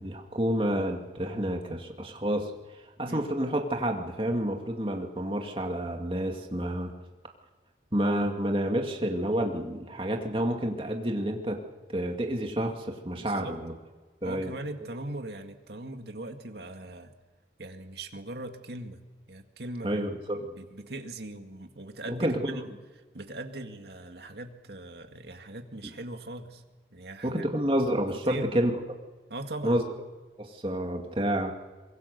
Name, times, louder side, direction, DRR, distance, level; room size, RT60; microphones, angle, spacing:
voice 1, 0.0-2.5 3.0-6.9 7.9-11.6 11.9-13.7 14.2-14.5 19.8-20.4 22.1-22.6 27.2-28.8 29.6-29.8 30.4-31.5, right 1 dB, 30° right, 2 dB, 2.4 m, -29 dB
voice 2, 13.2-13.6 14.2-17.1 17.6-19.0 19.3-20.0 20.3-22.6 23.1-26.6 26.9-27.4 28.2-28.5 29.3-29.8, right 2 dB, 70° right, 5 dB, 2.1 m, -40 dB
24.5 x 22.5 x 6.8 m, 1.3 s
head